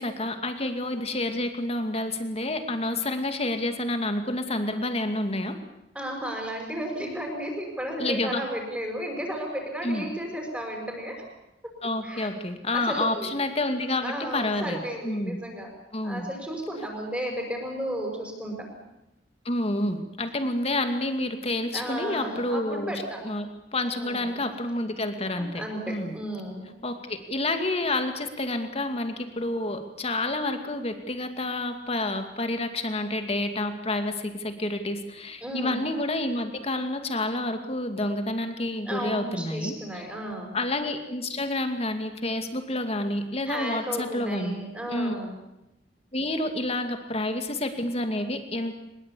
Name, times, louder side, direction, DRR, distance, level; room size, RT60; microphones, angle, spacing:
voice 1, 0.0-5.6 8.0-8.4 9.8-10.0 11.8-15.4 15.9-16.3 19.4-22.9 23.2-23.5 23.7-26.2 26.8-39.8 40.5-44.5 44.9-45.1 46.1-48.8, left 1 dB, 35° left, 7 dB, 2.4 m, -29 dB
voice 2, 5.9-11.1 12.0-12.3 12.7-13.4 14.0-15.7 16.0-18.6 21.7-23.2 23.8-24.4 25.5-26.6 35.4-35.8 38.8-40.5 43.5-45.3, equal, 10° right, 0 dB, 5.8 m, -33 dB
23.0 x 21.5 x 8.5 m, 0.92 s
head